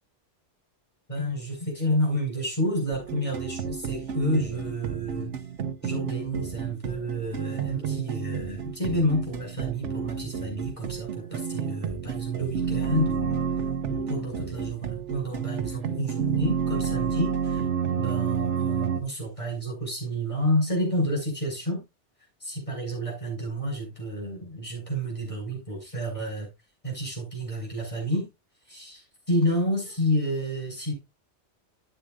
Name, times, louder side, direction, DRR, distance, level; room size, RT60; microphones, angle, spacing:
voice 1, 1.1-5.3 5.8-13.5 13.9-17.7 18.0-21.8 22.4-26.5 26.8-28.3 28.7-30.9, equal, 25° left, 5.5 m, -29 dB
sound 1, 2.9-19.0, right 7 dB, 85° right, 1.2 m, -30 dB
13.0 x 8.1 x 2.4 m
omnidirectional pair, 1.2 m